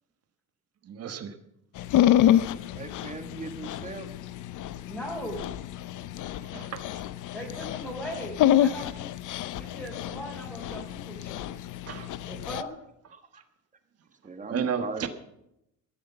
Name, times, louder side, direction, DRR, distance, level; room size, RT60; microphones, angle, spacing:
voice 1, 0.9-1.3 6.5-6.8 11.9-12.1 14.5-15.1, right 7 dB, 45° right, 9 dB, 1.3 m, -32 dB
Dog, 1.8-12.6, left 12 dB, 65° left, 0.7 m, -27 dB
voice 2, 2.7-4.1 13.1-13.2 14.2-15.1, right 3 dB, 25° right, 7 dB, 1.7 m, -38 dB
voice 3, 4.9-5.5 7.3-9.1 9.5-11.5 12.3-12.7, equal, ahead, -5 dB, 3.7 m, -39 dB
14.0 x 11.0 x 7.0 m, 0.82 s
cardioid pair, 115°, 33 cm